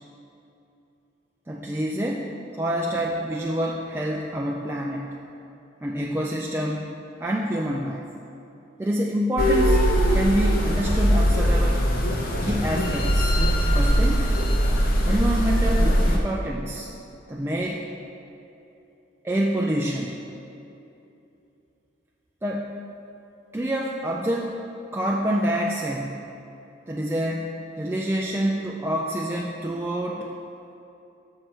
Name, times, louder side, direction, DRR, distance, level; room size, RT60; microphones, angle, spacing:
voice 1, 1.5-2.3 2.5-5.2 5.8-6.8 7.2-8.1 8.8-9.9 10.1-11.8 12.4-13.4 13.7-14.3 15.1-16.9 17.3-17.8 19.2-20.3 22.4-22.7 23.5-24.6 24.9-26.2 26.9-30.3, right 1 dB, 10° right, -3 dB, 0.3 m, -27 dB
sound 1, 9.4-16.2, equal, 50° left, 0.7 m, -21 dB
6.7 x 6.2 x 4.4 m, 2.8 s
head